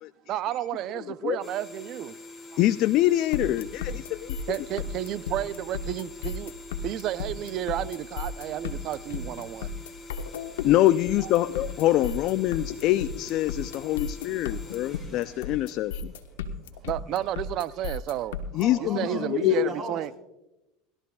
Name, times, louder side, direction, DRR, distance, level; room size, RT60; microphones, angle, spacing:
voice 1, 0.3-2.2 2.5-2.6 4.5-6.5 6.8-9.7 11.2-11.3 14.6-14.8 16.8-18.4 18.8-20.1, right 12 dB, 50° right, 0.5 m, -32 dB
sound 1, 1.4-16.6, left 2 dB, 5° left, 4.1 m, -45 dB
voice 2, 2.6-4.4 10.6-16.1 18.5-19.7, left 14 dB, 55° left, 0.4 m, -24 dB
sound 2, 3.3-18.6, left 5 dB, 85° left, 1.1 m, -34 dB
voice 3, 18.5-20.1, right 1 dB, 25° right, 3.1 m, -37 dB
21.5 x 13.0 x 2.3 m
hypercardioid pair, 95°, 0 cm